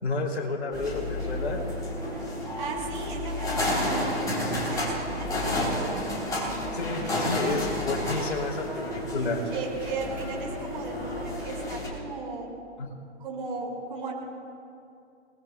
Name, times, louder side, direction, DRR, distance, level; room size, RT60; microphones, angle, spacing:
voice 1, 0.0-1.6 6.7-9.4 12.8-12.9, left 3 dB, 65° left, 1 dB, 2.9 m, -30 dB
sound 1, 0.7-11.9, left 1 dB, 10° left, 3.4 m, -31 dB
voice 2, 2.6-5.9 8.7-8.9 9.2-12.5 13.2-14.1, right 4 dB, 45° right, -2 dB, 5.2 m, -36 dB
29.0 x 20.0 x 2.3 m, 2.5 s
figure-of-eight pair, 130°, 35 cm